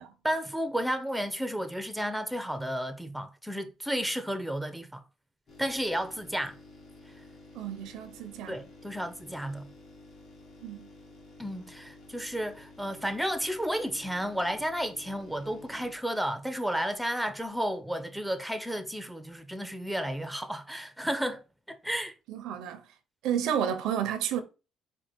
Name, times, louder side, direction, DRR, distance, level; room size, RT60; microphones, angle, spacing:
voice 1, 0.2-5.0 5.6-6.5 8.5-9.7 11.4-21.4 21.7-22.1, equal, ahead, 0.6 m, -32 dB
sound 1, 5.5-17.1 17.4-17.5, left 2 dB, 55° left, 1.6 m, -52 dB
voice 2, 7.5-8.6 10.6-10.9 22.3-22.8 23.2-24.4, right 9 dB, 85° right, 0.6 m, -31 dB
4.5 x 2.2 x 4.3 m
cardioid pair, 90°, 0 cm